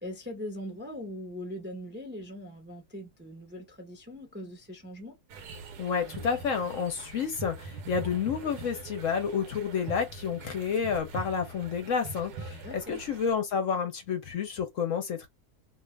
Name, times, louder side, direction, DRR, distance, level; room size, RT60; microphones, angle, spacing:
voice 1, 0.0-5.2 12.5-13.0, left 1 dB, 10° right, 0.5 m, -41 dB
sound 1, 5.3-13.3, right 3 dB, 85° right, 1.2 m, -43 dB
voice 2, 5.8-15.3, left 6 dB, 65° left, 0.9 m, -30 dB
2.6 x 2.4 x 3.2 m
omnidirectional pair, 1.7 m